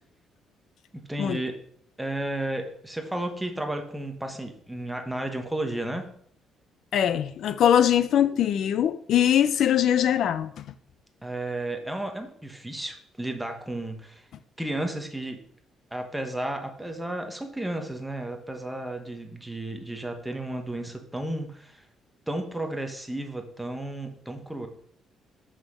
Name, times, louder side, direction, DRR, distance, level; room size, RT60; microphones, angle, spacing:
voice 1, 1.1-1.6 2.0-6.1 11.2-14.2 14.6-15.4 15.9-21.8 22.3-24.7, right 1 dB, 5° right, 1.1 m, -33 dB
voice 2, 6.9-10.5, left 10 dB, 55° left, 0.4 m, -22 dB
6.5 x 6.2 x 6.3 m
cardioid pair, 160°, 0 cm